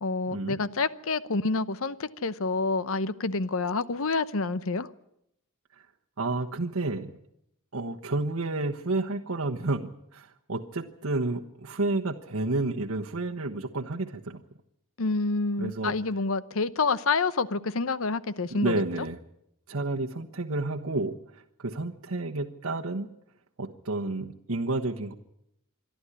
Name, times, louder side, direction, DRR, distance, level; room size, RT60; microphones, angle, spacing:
voice 1, 0.0-4.9 15.0-18.8, left 3 dB, 65° left, 16 dB, 0.8 m, -28 dB
voice 2, 6.2-7.1 7.7-14.4 15.6-15.9 18.5-19.2 19.7-23.1 23.6-25.1, right 2 dB, 75° right, 2 dB, 1.2 m, -30 dB
26.5 x 11.5 x 9.9 m, 0.78 s
head